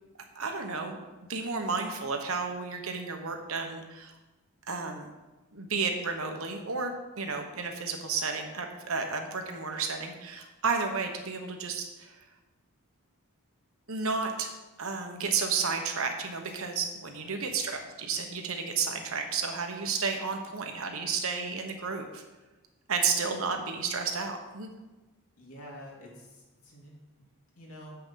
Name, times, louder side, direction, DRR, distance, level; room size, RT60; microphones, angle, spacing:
voice 1, 0.3-1.0 1.3-4.1 4.7-5.1 5.5-12.2 13.9-14.5 14.8-22.2 22.9-24.7, right 5 dB, 75° right, 4 dB, 1.2 m, -32 dB
voice 2, 25.4-26.9 27.6-27.9, equal, 80° left, -2 dB, 2.5 m, -48 dB
7.9 x 5.8 x 5.8 m, 1.1 s
head